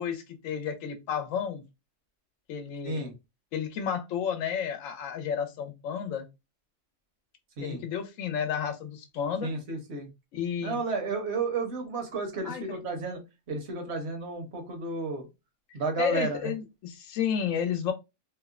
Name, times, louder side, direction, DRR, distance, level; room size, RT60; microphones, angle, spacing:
voice 1, 0.0-1.6 2.5-3.0 3.5-6.3 7.6-9.5 10.3-10.8 12.4-12.6 16.0-17.9, left 7 dB, 90° left, 7 dB, 1.0 m, -31 dB
voice 2, 9.4-10.1 10.6-15.3 15.7-16.5, right 3 dB, 60° right, 3 dB, 1.0 m, -32 dB
2.8 x 2.0 x 2.3 m, 0.24 s
omnidirectional pair, 1.3 m